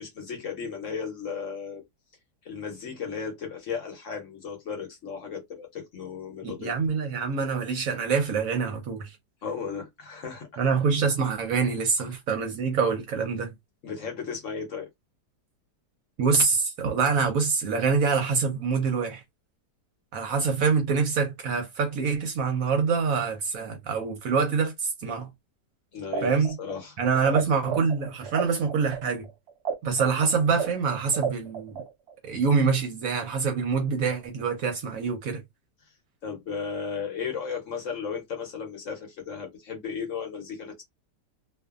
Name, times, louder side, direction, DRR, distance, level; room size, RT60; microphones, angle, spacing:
voice 1, 0.0-1.8 2.4-6.7 9.4-10.5 13.8-14.9 25.9-27.4 36.2-40.8, left 6 dB, 55° left, 1.0 m, -35 dB
voice 2, 6.4-9.2 10.6-13.5 16.2-19.2 20.1-25.3 26.2-26.6 27.0-29.3 29.8-31.8 32.2-35.4, right 5 dB, 65° right, 0.9 m, -25 dB
sound 1, 26.0-27.4 27.7-32.1, right 6 dB, 85° right, 0.5 m, -31 dB
2.6 x 2.4 x 2.3 m
omnidirectional pair, 1.8 m